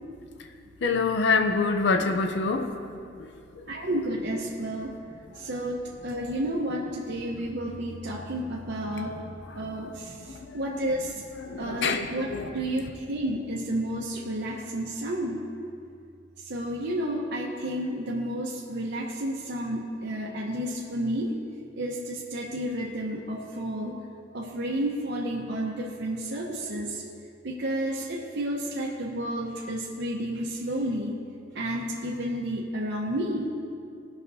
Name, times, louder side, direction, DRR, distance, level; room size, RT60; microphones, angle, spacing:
voice 1, 0.8-2.7 10.3-10.8 11.4-12.5, left 4 dB, 65° left, 7 dB, 0.6 m, -26 dB
voice 2, 3.7-5.0 5.3-9.2 9.6-11.2 11.6-15.5 16.4-21.3 21.8-24.0 24.3-27.0 27.4-31.2 31.5-33.6, right 1 dB, 65° right, -3 dB, 0.9 m, -31 dB
18.0 x 6.0 x 2.7 m, 2.4 s
head